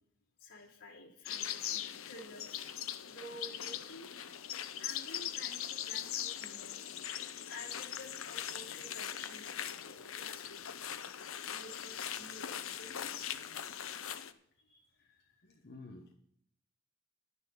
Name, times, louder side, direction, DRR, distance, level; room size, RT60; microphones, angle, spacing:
voice 1, 0.4-2.7 3.0-4.1 4.8-6.8 7.5-10.8 11.5-13.4 14.6-14.9, left 2 dB, 85° left, -3 dB, 3.0 m, -51 dB
sound 1, 1.2-14.3, left 10 dB, 65° left, 0.7 m, -41 dB
voice 2, 14.9-16.1, left 2 dB, 50° left, 1 dB, 1.2 m, -53 dB
11.5 x 10.0 x 5.4 m, 0.66 s
head